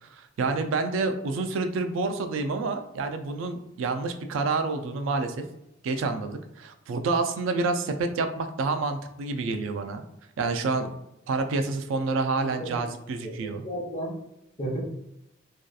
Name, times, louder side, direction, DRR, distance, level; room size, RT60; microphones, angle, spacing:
voice 1, 0.1-5.4 5.8-10.0 10.4-10.9 11.3-13.6, right 3 dB, 85° right, 7 dB, 0.3 m, -28 dB
voice 2, 12.3-12.7 13.2-14.2 14.6-14.8, right 1 dB, 35° left, -3 dB, 0.7 m, -34 dB
2.7 x 2.3 x 2.2 m, 0.85 s
head